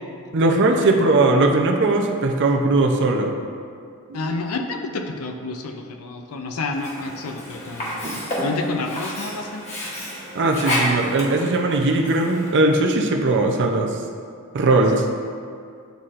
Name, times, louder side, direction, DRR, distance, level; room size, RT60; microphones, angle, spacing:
voice 1, 0.3-3.4 4.1-4.2 8.0-8.3 10.3-14.0 14.5-15.0, right 2 dB, 55° right, 2 dB, 0.5 m, -19 dB
voice 2, 4.1-9.6 14.9-15.0, left 3 dB, 75° left, 5 dB, 0.5 m, -29 dB
Sink (filling or washing), 6.7-12.7, equal, 30° left, 1.2 m, -30 dB
9.2 x 4.2 x 2.5 m, 2.3 s
head